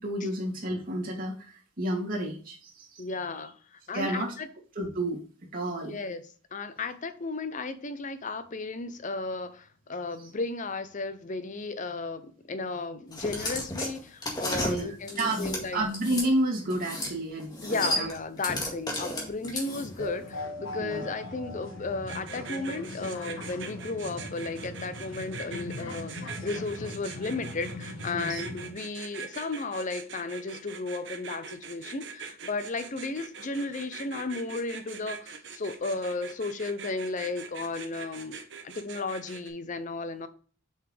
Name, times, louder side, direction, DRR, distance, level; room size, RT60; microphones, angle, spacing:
voice 1, 0.0-3.0 3.9-4.3 4.7-5.2 5.5-6.0 14.6-18.1 20.8-21.0 28.1-28.4, right 1 dB, 45° right, 2.7 m, -31 dB
voice 2, 3.0-4.5 5.9-15.8 17.6-38.4 38.6-40.3, left 3 dB, 40° left, 0.6 m, -34 dB
sound 1, 13.1-16.3 16.7-17.1 17.4-20.0, left 1 dB, 20° left, 1.9 m, -33 dB
sound 2, 19.7-28.7, left 2 dB, 80° left, 1.3 m, -40 dB
sound 3, 22.1-39.5, right 6 dB, 60° right, 1.1 m, -42 dB
7.0 x 5.5 x 3.4 m
head